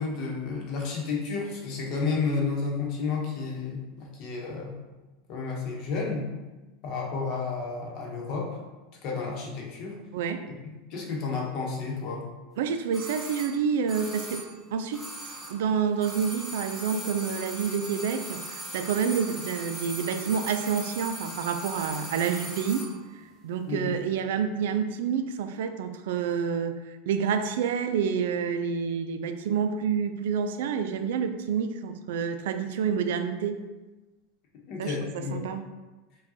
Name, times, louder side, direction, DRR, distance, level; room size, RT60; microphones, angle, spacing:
voice 1, 0.0-4.8 5.3-6.3 6.8-8.6 9.0-9.9 10.9-12.3 23.7-23.9 34.7-35.4, left 4 dB, 50° left, -2 dB, 0.9 m, -31 dB
voice 2, 10.1-10.4 12.6-14.4 14.7-15.0 15.5-22.9 23.1-33.6 34.8-35.6, right 7 dB, 80° right, 8 dB, 0.3 m, -28 dB
sound 1, 12.9-15.7 15.9-23.0 23.2-23.3, right 1 dB, 5° right, 0.8 m, -39 dB
4.8 x 2.3 x 2.7 m, 1.2 s
supercardioid pair, 145°, 0 cm